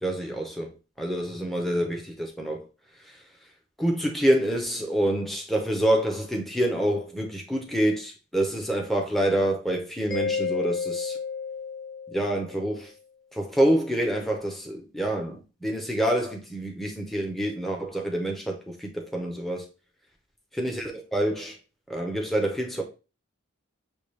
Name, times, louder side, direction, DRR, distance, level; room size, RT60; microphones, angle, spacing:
voice 1, 0.0-2.7 3.0-3.2 3.8-11.2 12.1-12.9 13.3-19.7 20.5-21.6 21.9-22.8, right 1 dB, ahead, 0.6 m, -27 dB
Mallet percussion, 10.1-12.6, left 5 dB, 20° left, 1.1 m, -31 dB
6.9 x 2.3 x 3.2 m
head